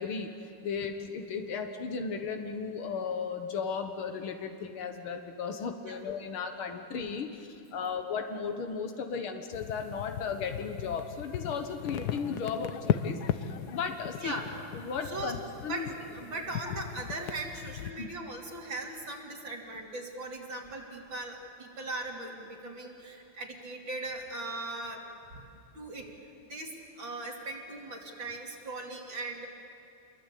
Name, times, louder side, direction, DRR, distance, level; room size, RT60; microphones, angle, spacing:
voice 1, 0.0-14.4 14.7-15.4 15.6-15.9 18.0-18.1 23.0-23.2, left 5 dB, 90° left, 5 dB, 2.2 m, -35 dB
crackle fx, 9.5-17.9, left 9 dB, 60° left, 1.2 m, -37 dB
voice 2, 14.2-14.5 15.1-15.4 15.7-25.1 25.7-29.5, right 2 dB, 65° right, -1 dB, 3.6 m, -39 dB
27.0 x 22.5 x 8.4 m, 2.6 s
omnidirectional pair, 2.2 m